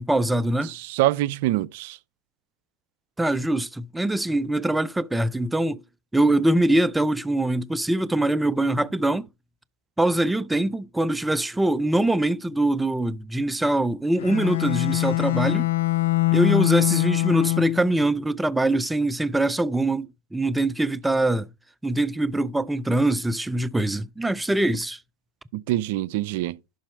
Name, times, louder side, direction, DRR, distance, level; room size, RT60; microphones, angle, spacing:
voice 1, 0.0-0.7 3.2-5.8 6.1-9.3 10.0-15.7 16.3-21.5 21.8-25.0, right 1 dB, 5° right, 0.5 m, -23 dB
voice 2, 0.7-2.0 25.5-26.6, right 16 dB, 65° right, 0.5 m, -25 dB
Bowed string instrument, 14.2-18.0, left 19 dB, 80° left, 0.5 m, -23 dB
11.5 x 4.2 x 4.4 m
hypercardioid pair, 105°, 0 cm